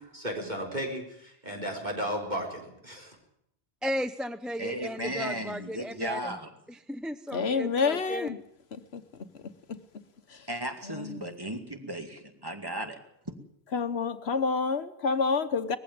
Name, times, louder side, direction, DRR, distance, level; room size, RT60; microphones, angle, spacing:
voice 1, 0.0-3.2, equal, 40° right, 1 dB, 4.5 m, -34 dB
voice 2, 3.8-6.4 6.7-8.3, equal, ahead, 11 dB, 0.5 m, -35 dB
voice 3, 4.6-6.5 10.5-13.0, right 1 dB, 20° right, 5 dB, 2.2 m, -35 dB
voice 4, 7.3-8.4 8.9-9.3 9.7-9.8 10.3-10.5 10.8-11.3 13.7-15.8, left 5 dB, 70° left, 10 dB, 1.3 m, -29 dB
20.0 x 15.5 x 9.3 m, 0.74 s
omnidirectional pair, 1.1 m